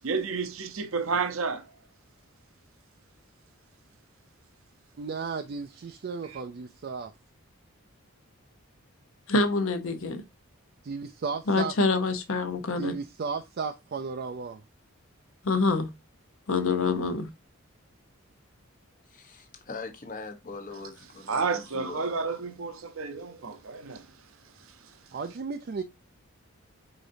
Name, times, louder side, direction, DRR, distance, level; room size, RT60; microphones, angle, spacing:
voice 1, 0.0-1.7 6.3-6.4 21.3-24.1, right 4 dB, 70° right, 0.7 m, -31 dB
voice 2, 5.0-7.1 10.8-11.7 12.8-14.6 25.1-25.8, right 5 dB, 45° right, 0.4 m, -34 dB
voice 3, 9.3-10.2 11.5-13.0 15.4-15.9 16.5-17.3, left 3 dB, 70° left, 0.8 m, -26 dB
voice 4, 19.0-22.1, left 3 dB, 40° left, 0.9 m, -41 dB
5.0 x 3.9 x 2.6 m
head